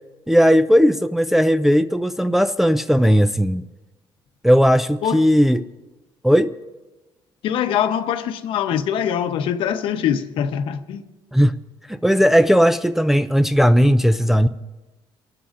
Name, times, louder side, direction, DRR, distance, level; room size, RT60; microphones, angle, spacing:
voice 1, 0.3-3.6 4.4-5.6 6.2-6.5 11.3-11.6 11.9-14.5, equal, 5° right, 0.3 m, -16 dB
voice 2, 7.4-11.0, left 9 dB, 70° left, 0.8 m, -23 dB
28.5 x 12.5 x 2.5 m
cardioid pair, 145°, 9 cm